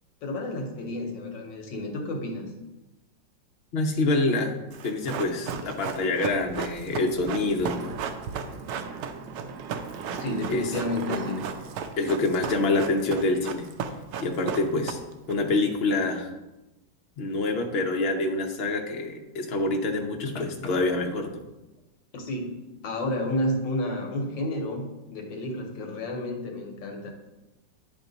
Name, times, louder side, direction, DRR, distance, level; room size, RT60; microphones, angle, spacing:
voice 1, 0.2-2.4 10.2-11.4 22.1-22.6 22.8-24.8 25.1-27.1, left 1 dB, 80° left, 2 dB, 1.7 m, -30 dB
voice 2, 3.7-4.6 4.8-7.9 10.5-10.6 12.0-13.7 14.2-15.0 15.3-16.3 17.2-21.4, left 2 dB, 50° left, 2 dB, 0.7 m, -26 dB
Run, 4.7-15.3 15.6-15.7, right 7 dB, 70° right, 1.0 m, -35 dB
sound 1, 7.6-12.9, right 5 dB, 90° right, 1.3 m, -40 dB
9.6 x 3.7 x 3.9 m, 1.0 s
omnidirectional pair, 2.0 m